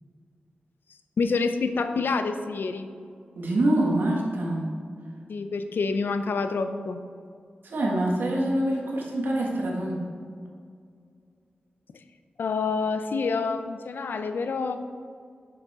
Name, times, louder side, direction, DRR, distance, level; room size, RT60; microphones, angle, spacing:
voice 1, 1.2-2.9 5.3-7.0 12.4-14.8, left 4 dB, 80° left, 9 dB, 0.5 m, -27 dB
voice 2, 3.4-4.7 7.6-10.1, right 1 dB, 80° right, -2 dB, 1.7 m, -25 dB
9.2 x 6.9 x 3.6 m, 2.2 s
wide cardioid pair, 70°, 3 cm